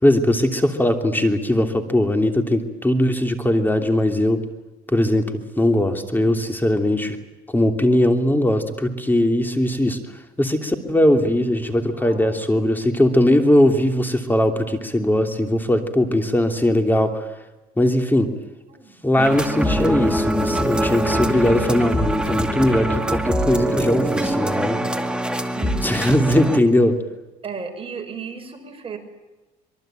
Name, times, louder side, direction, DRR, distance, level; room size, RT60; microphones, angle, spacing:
voice 1, 0.0-4.4 4.9-7.2 7.5-10.0 10.4-17.3 17.8-18.3 19.0-24.8 25.8-27.0, left 1 dB, 10° left, 6 dB, 3.0 m, -19 dB
voice 2, 11.9-12.5 18.7-18.9 21.3-21.6 25.5-26.0 27.4-29.0, right 6 dB, 35° right, 4 dB, 6.2 m, -34 dB
sound 1, 19.2-26.6, right 1 dB, 5° right, 2.3 m, -23 dB
25.0 x 23.0 x 9.1 m, 1.1 s
cardioid pair, 110°, 17 cm